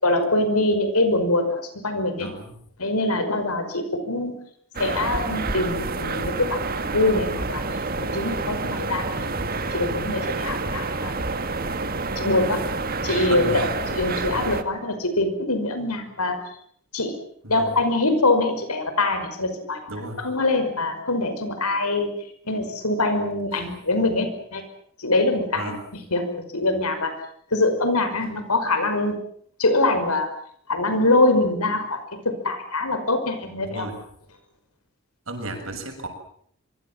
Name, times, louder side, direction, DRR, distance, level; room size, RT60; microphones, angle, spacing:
voice 1, 0.0-2.3 2.8-4.3 4.8-7.6 8.0-9.2 9.7-11.1 12.2-12.6 13.0-16.4 16.9-17.2 17.5-19.8 20.2-22.1 22.5-24.6 25.0-25.7 26.1-26.3 26.5-27.1 27.5-29.1 29.6-30.3 30.7-33.9, left 2 dB, 90° left, 9 dB, 5.7 m, -23 dB
voice 2, 2.2-2.6 12.1-12.5 13.3-13.7 17.4-17.7 19.9-20.2 23.5-23.7 25.5-25.8 33.6-34.0 35.3-36.1, right 2 dB, 65° right, 5 dB, 7.2 m, -34 dB
sound 1, 4.7-14.6, right 3 dB, 40° right, 1.8 m, -28 dB
25.5 x 24.0 x 7.5 m, 0.64 s
head